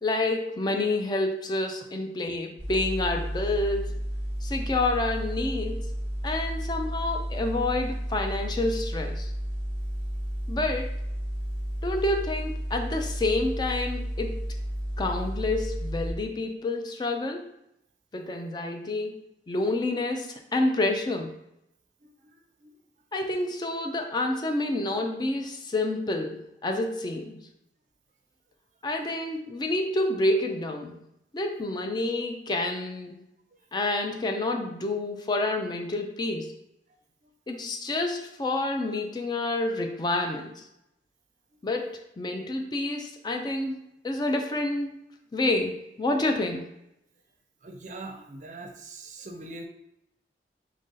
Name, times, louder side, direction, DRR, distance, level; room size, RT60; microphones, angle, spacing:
voice 1, 0.0-3.9 4.4-5.9 6.2-9.3 10.5-10.9 11.8-14.4 15.0-17.5 18.1-19.2 19.5-21.3 23.1-27.4 28.8-31.0 31.3-33.2 33.7-36.5 37.5-40.6 41.6-43.8 44.0-45.0 45.3-46.7, left 2 dB, 25° left, 4 dB, 0.4 m, -28 dB
sound 1, 2.6-16.1, equal, 50° left, 1.4 m, -32 dB
voice 2, 47.6-49.7, right 2 dB, 45° right, 3 dB, 0.5 m, -41 dB
3.1 x 2.6 x 3.7 m, 0.82 s
head